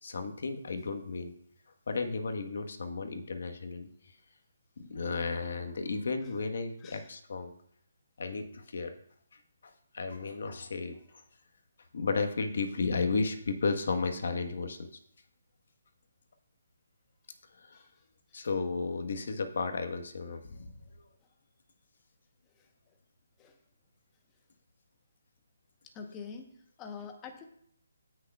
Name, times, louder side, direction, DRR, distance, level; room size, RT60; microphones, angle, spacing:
voice 1, 0.0-1.3 1.9-3.9 4.9-7.5 8.2-8.9 9.9-11.0 11.9-14.9 17.7-17.8 18.3-20.7, left 4 dB, 60° left, 6 dB, 1.3 m, -33 dB
voice 2, 6.8-7.1 17.7-17.9 18.3-18.5 22.6-22.7 23.4-23.6 25.9-27.4, left 5 dB, 15° left, 4 dB, 1.0 m, -46 dB
16.5 x 6.5 x 2.4 m, 0.67 s
hypercardioid pair, 170°, 0 cm